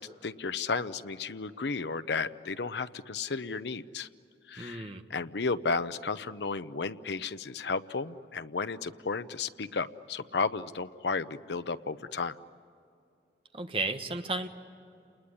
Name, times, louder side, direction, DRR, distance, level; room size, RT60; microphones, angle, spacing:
voice 1, 0.0-4.1 4.5-12.3, left 4 dB, 80° left, 12 dB, 0.7 m, -33 dB
voice 2, 4.6-5.0 13.5-14.5, right 3 dB, 30° right, 7 dB, 1.2 m, -33 dB
29.5 x 20.5 x 9.9 m, 2.6 s
head